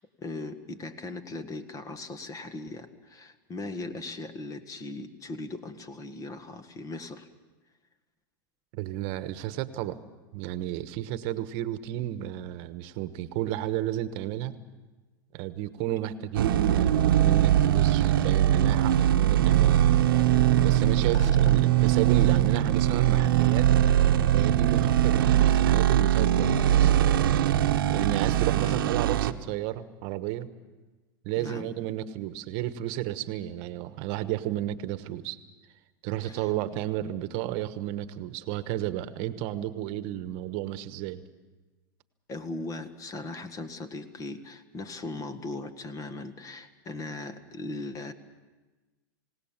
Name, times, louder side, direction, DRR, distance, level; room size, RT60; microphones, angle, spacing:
voice 1, 0.2-7.3 21.1-21.4 28.6-28.9 31.4-31.7 36.2-36.5 42.3-48.1, left 2 dB, 30° left, 10 dB, 1.7 m, -38 dB
voice 2, 8.7-10.0 10.3-14.6 15.3-19.8 20.6-23.7 24.3-26.9 27.9-30.5 31.2-35.4 36.0-41.2, right 13 dB, 55° right, 12 dB, 1.2 m, -32 dB
sound 1, 16.3-29.3, right 11 dB, 85° right, 1.0 m, -21 dB
28.0 x 18.0 x 7.3 m, 1.2 s
hypercardioid pair, 120°, 11 cm